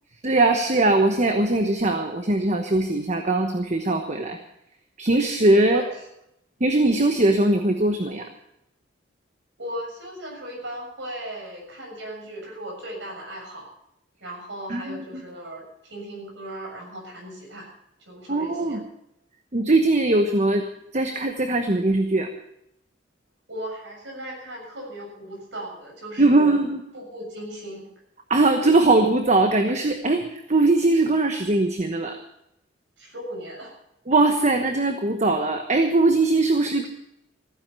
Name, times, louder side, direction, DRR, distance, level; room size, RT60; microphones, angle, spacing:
voice 1, 0.2-4.4 5.0-5.8 6.6-8.2 14.7-15.0 18.3-18.8 19.5-20.6 20.9-22.3 26.2-26.8 28.3-32.2 34.1-36.9, right 2 dB, 40° right, 5 dB, 1.1 m, -20 dB
voice 2, 9.6-13.7 14.2-17.7 18.1-18.8 23.5-26.6 26.9-27.9 33.0-33.7, right 1 dB, 75° right, 0 dB, 7.0 m, -37 dB
15.5 x 10.0 x 6.9 m, 0.80 s
head